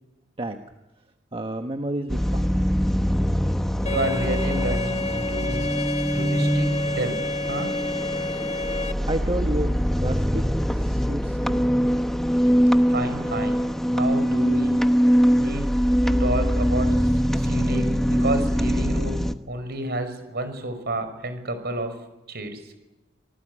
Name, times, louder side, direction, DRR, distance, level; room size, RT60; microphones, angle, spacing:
voice 1, 1.3-3.0 8.6-11.7, right 1 dB, 30° right, 5 dB, 1.4 m, -31 dB
sound 1, 2.1-19.3, equal, ahead, 1.1 m, -23 dB
voice 2, 3.8-5.7 6.1-7.2 7.5-7.7 12.9-14.8 15.3-15.7 16.1-22.0 22.3-22.7, right 1 dB, 55° right, 9 dB, 5.8 m, -30 dB
Bowed string instrument, 3.9-8.9, left 3 dB, 35° left, 1.5 m, -30 dB
26.5 x 20.0 x 9.9 m, 1.0 s
head